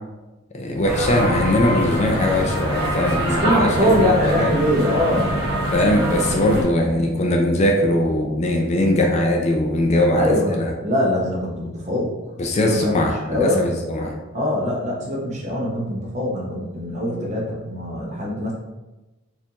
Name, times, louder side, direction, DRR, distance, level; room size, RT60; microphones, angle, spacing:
voice 1, 0.5-4.5 5.7-10.7 12.4-14.1, left 1 dB, 35° left, 1 dB, 0.4 m, -20 dB
sound 1, 0.8-6.6, equal, 20° right, 1.5 m, -24 dB
voice 2, 3.4-5.3 10.2-12.1 12.6-13.7 14.3-18.5, left 1 dB, 35° right, -3 dB, 0.8 m, -22 dB
4.1 x 2.6 x 2.8 m, 1.1 s
head